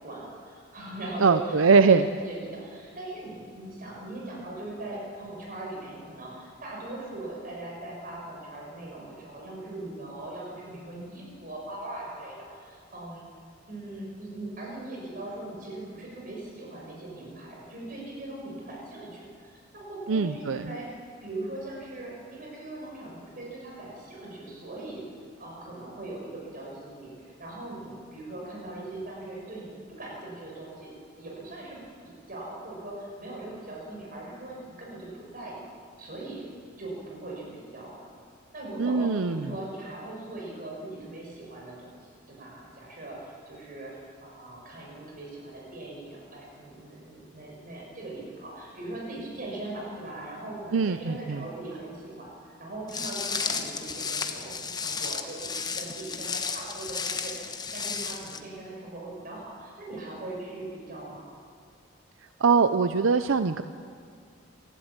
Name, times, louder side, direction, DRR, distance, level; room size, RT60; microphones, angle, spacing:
voice 1, 0.0-13.2 13.7-25.0 25.4-30.9 31.2-31.8 32.0-35.6 36.0-36.5 36.8-38.1 38.5-61.3, right 2 dB, 45° right, -3 dB, 6.8 m, -40 dB
voice 2, 1.2-2.0 20.1-20.7 38.8-39.5 50.7-51.4 62.4-63.6, right 5 dB, 85° right, 11 dB, 0.6 m, -22 dB
Walk footsteps, 52.9-58.4, left 5 dB, 20° left, 1.1 m, -33 dB
28.0 x 12.5 x 8.9 m, 2.3 s
head